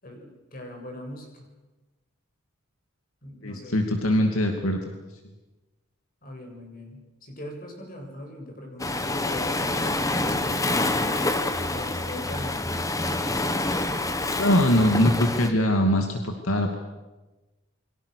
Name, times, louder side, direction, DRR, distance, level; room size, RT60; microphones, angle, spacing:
voice 1, 0.0-1.5 3.2-3.8 6.2-11.0 11.7-12.5, left 1 dB, 40° left, 2 dB, 7.2 m, -41 dB
voice 2, 3.4-5.0 14.4-16.7, equal, 75° left, 4 dB, 2.6 m, -22 dB
Waves surf, 8.8-15.5, left 2 dB, 15° left, 1.4 m, -27 dB
28.5 x 24.0 x 6.7 m, 1.1 s
head